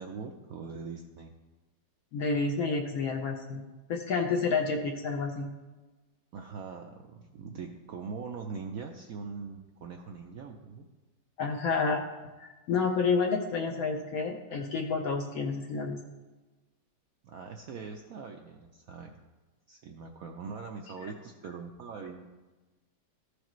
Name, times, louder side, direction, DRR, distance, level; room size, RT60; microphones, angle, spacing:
voice 1, 0.0-1.3 6.3-10.8 17.2-19.2 19.7-22.2, right 5 dB, 75° right, 3 dB, 0.8 m, -42 dB
voice 2, 2.1-3.6 3.9-5.5 11.4-12.0 12.4-16.0, left 4 dB, 70° left, 3 dB, 0.9 m, -29 dB
14.0 x 4.9 x 3.0 m, 1.2 s
omnidirectional pair, 2.0 m